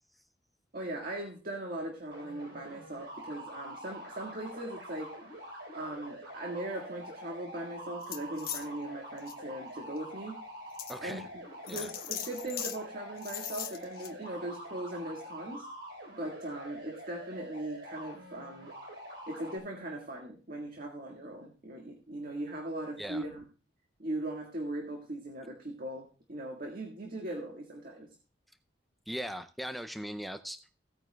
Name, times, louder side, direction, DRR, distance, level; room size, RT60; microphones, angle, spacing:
voice 1, 0.7-5.1 5.7-10.4 11.0-11.2 11.7-15.7 16.2-18.7 19.3-23.4 24.0-28.1, right 1 dB, 50° right, 1 dB, 1.7 m, -39 dB
sound 1, 2.1-19.6, equal, 75° right, 3.8 m, -46 dB
sound 2, 8.0-8.7 9.2-9.3 10.0-10.1 10.8-11.0 11.7-12.8 13.2-14.1, left 10 dB, 55° left, 1.1 m, -39 dB
voice 2, 10.9-11.2 11.7-11.9 23.0-23.2 29.1-30.6, equal, ahead, 8 dB, 0.4 m, -39 dB
17.0 x 9.1 x 2.3 m, 0.36 s
head